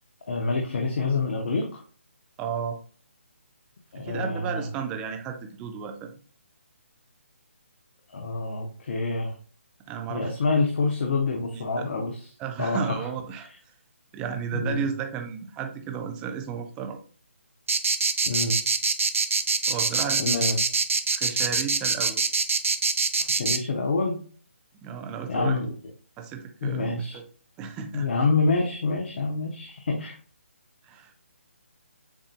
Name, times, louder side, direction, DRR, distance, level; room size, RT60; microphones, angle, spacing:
voice 1, 0.3-1.8 3.9-4.6 8.1-9.3 10.1-12.1 12.6-12.9 14.5-14.8 18.2-18.6 20.2-20.6 23.3-24.2 25.3-25.7 26.6-27.2 27.9-30.2, left 3 dB, 55° left, 2 dB, 0.9 m, -26 dB
voice 2, 2.4-2.8 3.9-6.2 9.9-10.3 11.5-11.9 12.4-13.7 14.1-17.0 19.7-20.5 21.1-22.2 24.8-25.6 26.2-27.2 27.6-28.1 30.8-31.1, right 7 dB, 10° right, 5 dB, 0.4 m, -33 dB
sound 1, 17.7-23.6, right 4 dB, 80° right, 0.6 m, -24 dB
7.1 x 2.6 x 2.4 m, 0.43 s
hypercardioid pair, 155°, 7 cm